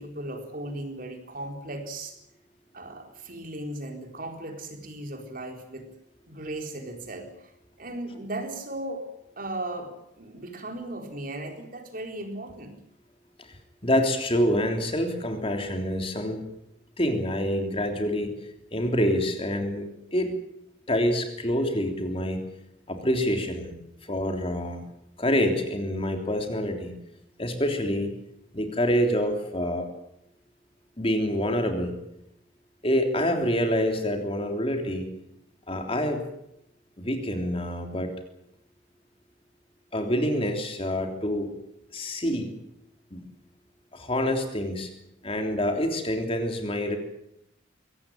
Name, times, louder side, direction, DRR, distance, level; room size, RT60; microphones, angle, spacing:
voice 1, 0.0-2.2 2.7-5.9 6.3-7.5 7.8-9.1 9.4-12.8, right 1 dB, 45° right, 4 dB, 4.3 m, -37 dB
voice 2, 13.8-16.4 17.0-18.3 18.7-20.4 20.9-22.4 22.9-23.7 24.1-24.8 25.2-26.9 27.4-28.1 28.5-29.9 31.0-31.9 32.8-35.1 35.7-36.2 37.0-38.1 39.9-41.5 41.9-42.5 43.1-43.2 43.9-44.9 45.2-47.0, equal, 30° left, 4 dB, 3.4 m, -26 dB
23.0 x 18.0 x 9.2 m, 0.80 s
head